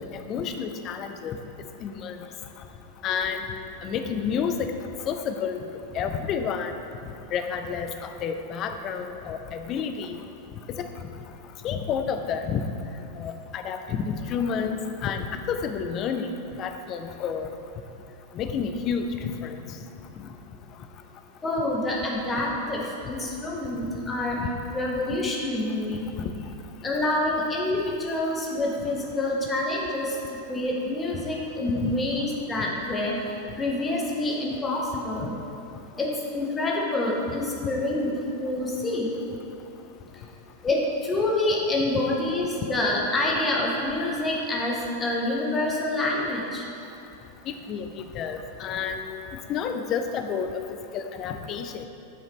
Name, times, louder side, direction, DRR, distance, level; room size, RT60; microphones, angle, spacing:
voice 1, 0.3-1.4 1.8-2.2 3.0-3.4 3.8-4.7 5.1-5.6 5.9-6.7 7.3-7.9 8.2-10.2 11.6-12.6 13.2-14.0 14.3-16.3 16.6-17.5 18.4-19.6 24.4-24.5 26.2-26.3 31.8-31.9 35.2-35.3 47.7-49.0 49.5-50.5 50.9-51.9, left 7 dB, 35° left, 7 dB, 0.4 m, -29 dB
voice 2, 21.4-24.4 24.7-26.1 26.8-30.2 30.5-35.3 36.0-38.1 38.4-39.1 40.6-46.7, left 2 dB, 15° left, -3 dB, 1.0 m, -27 dB
8.1 x 3.9 x 3.1 m, 2.7 s
figure-of-eight pair, 90°, 0 cm